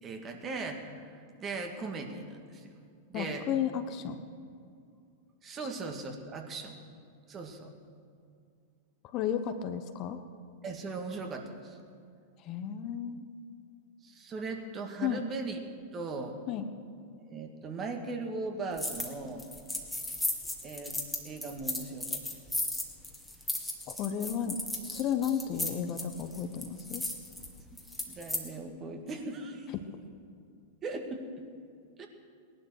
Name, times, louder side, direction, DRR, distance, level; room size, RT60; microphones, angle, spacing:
voice 1, 0.0-2.8 3.1-3.5 5.4-6.8 7.3-7.7 10.6-11.8 14.0-15.6 15.9-16.4 17.3-19.5 20.6-21.0 21.2-22.2 28.1-29.7 30.8-31.3 32.0-32.1, right 3 dB, 30° right, 4 dB, 2.1 m, -38 dB
voice 2, 3.1-4.2 5.6-5.7 9.0-10.2 12.4-13.3 15.0-15.2 16.5-16.6 23.9-24.6 24.9-27.1 29.7-29.8, left 9 dB, 45° left, 8 dB, 1.1 m, -33 dB
sound 1, 18.8-19.1 19.4-28.4, left 2 dB, 5° left, 2.1 m, -35 dB
18.0 x 11.5 x 6.6 m, 2.4 s
hypercardioid pair, 100°, 0 cm